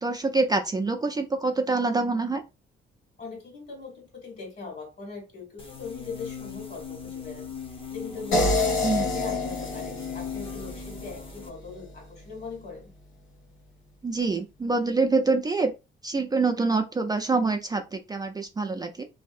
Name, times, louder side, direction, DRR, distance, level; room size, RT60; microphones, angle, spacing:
voice 1, 0.0-2.4 8.8-9.0 14.0-15.7 16.0-19.0, right 3 dB, 20° right, 0.4 m, -25 dB
voice 2, 3.2-7.5 7.9-12.9, left 4 dB, 55° left, 1.7 m, -40 dB
sound 1, 5.6-11.5, left 7 dB, 25° left, 0.7 m, -39 dB
sound 2, 8.3-11.4, left 2 dB, 85° left, 1.1 m, -27 dB
2.7 x 2.5 x 2.4 m
cardioid pair, 90°, 20 cm